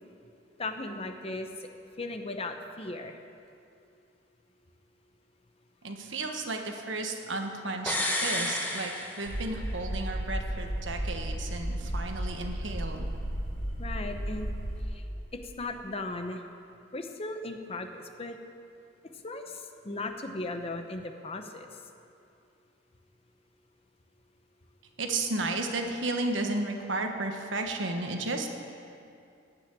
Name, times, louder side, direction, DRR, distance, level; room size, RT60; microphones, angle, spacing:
voice 1, 0.6-1.7 2.0-3.2 13.8-14.5 14.9-15.0 15.6-16.4 16.9-18.4 19.2-21.7, left 2 dB, 30° left, 6 dB, 0.8 m, -37 dB
voice 2, 5.8-13.1 25.0-28.5, right 2 dB, 75° right, 4 dB, 1.3 m, -33 dB
sound 1, 7.9-9.8 10.1-10.2, left 1 dB, 10° left, 1.1 m, -31 dB
sound 2, 9.2-14.8, right 1 dB, 50° left, 2.7 m, -34 dB
14.5 x 6.1 x 8.9 m, 2.5 s
head